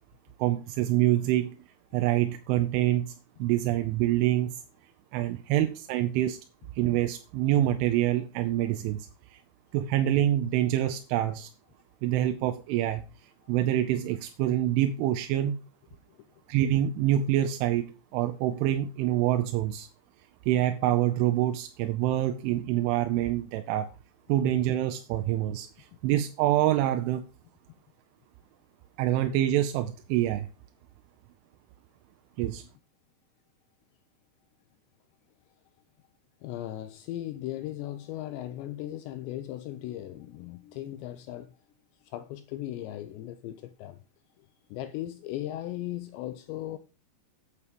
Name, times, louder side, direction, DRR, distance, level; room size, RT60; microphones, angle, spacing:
voice 1, 0.4-1.6 1.9-3.1 3.4-4.6 5.1-6.4 6.8-9.4 9.7-11.5 12.0-13.0 13.5-15.6 16.5-19.9 20.5-23.9 24.3-27.2 29.0-30.5 32.4-32.7, right 13 dB, 90° right, 3.2 m, -26 dB
voice 2, 36.4-41.5 42.0-44.0 44.4-46.8, left 13 dB, 80° left, 2.7 m, -37 dB
8.4 x 8.3 x 5.1 m
omnidirectional pair, 5.4 m